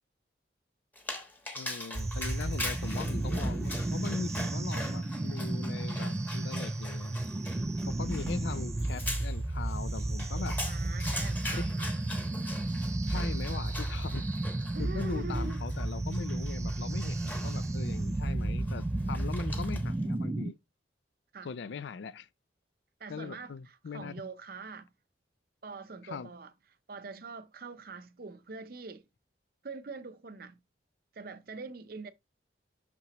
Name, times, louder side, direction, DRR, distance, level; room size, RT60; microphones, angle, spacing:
Dog, 1.0-20.0, left 1 dB, 10° left, 1.1 m, -43 dB
voice 1, 1.5-7.2 7.9-10.6 11.5-12.0 13.1-14.3 14.8-20.6 21.4-22.3 23.1-24.2 26.0-26.3, left 5 dB, 75° left, 0.4 m, -40 dB
sound 1, 1.9-20.5, right 2 dB, 15° right, 0.3 m, -33 dB
voice 2, 10.6-11.9 14.7-15.6 21.3-21.5 23.0-24.9 25.6-26.5 26.9-29.0 29.6-30.6 31.1-32.1, right 4 dB, 55° right, 0.6 m, -44 dB
6.0 x 5.9 x 2.9 m
head